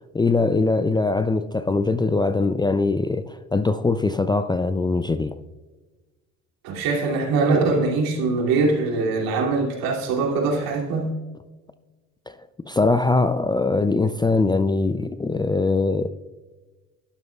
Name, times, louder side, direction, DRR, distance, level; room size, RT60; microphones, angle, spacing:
voice 1, 0.0-5.4 12.3-16.1, left 3 dB, 10° left, 0.4 m, -22 dB
voice 2, 6.6-11.1, right 3 dB, 70° right, 2.7 m, -22 dB
12.0 x 11.5 x 2.3 m
hypercardioid pair, 70°, 37 cm